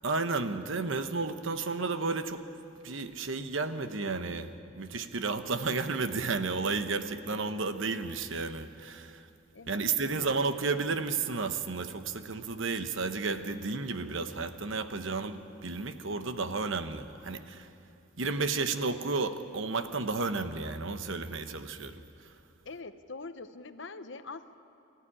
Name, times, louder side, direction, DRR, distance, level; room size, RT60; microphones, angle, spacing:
voice 1, 0.0-2.4 2.8-9.3 9.7-17.7 18.2-22.3, right 4 dB, 65° right, 9 dB, 1.1 m, -32 dB
voice 2, 9.5-10.3 22.6-24.6, left 3 dB, 60° left, 11 dB, 0.8 m, -44 dB
23.0 x 14.5 x 10.0 m, 2.6 s
head